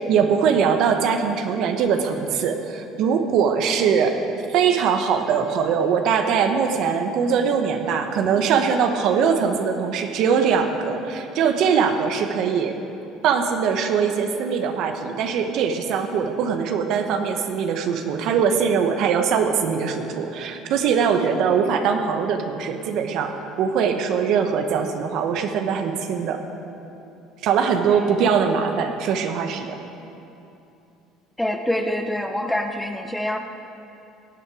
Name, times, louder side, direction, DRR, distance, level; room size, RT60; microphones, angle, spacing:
voice 1, 0.0-4.2 4.5-12.8 13.2-26.4 27.4-29.8, right 6 dB, 65° right, 6 dB, 1.1 m, -22 dB
voice 2, 31.4-33.4, left 1 dB, 5° left, 5 dB, 0.9 m, -26 dB
17.0 x 9.0 x 4.9 m, 2.8 s
supercardioid pair, 100°, 0 cm